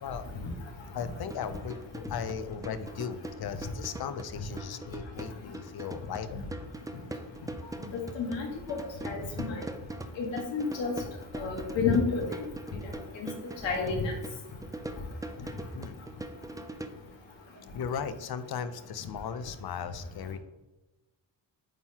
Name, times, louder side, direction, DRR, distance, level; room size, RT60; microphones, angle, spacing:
voice 1, 0.9-6.5 15.7-16.0 17.7-20.4, left 7 dB, 60° left, 12 dB, 0.6 m, -37 dB
sound 1, 1.1-16.9, right 2 dB, 10° right, 0.3 m, -42 dB
voice 2, 8.1-9.6 10.2-10.9 11.3-12.4 13.1-13.3 13.6-14.1, left 4 dB, 85° left, -1 dB, 1.6 m, -30 dB
8.9 x 3.7 x 2.8 m, 1.1 s
cardioid pair, 115°, 44 cm